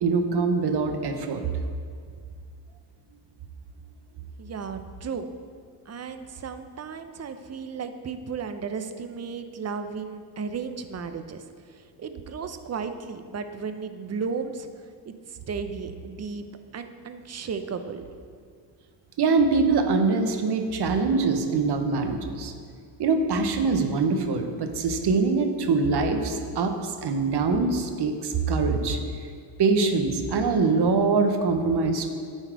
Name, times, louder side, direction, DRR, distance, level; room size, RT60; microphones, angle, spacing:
voice 1, 0.0-1.5 19.2-22.5 23.0-29.0 29.6-32.1, right 4 dB, 50° right, 6 dB, 1.0 m, -23 dB
voice 2, 4.4-5.3 5.9-11.4 11.7-14.7 15.1-16.5 16.7-18.1, right 5 dB, 30° right, 9 dB, 0.6 m, -34 dB
9.9 x 4.5 x 4.6 m, 2.2 s
cardioid pair, 75°, 50 cm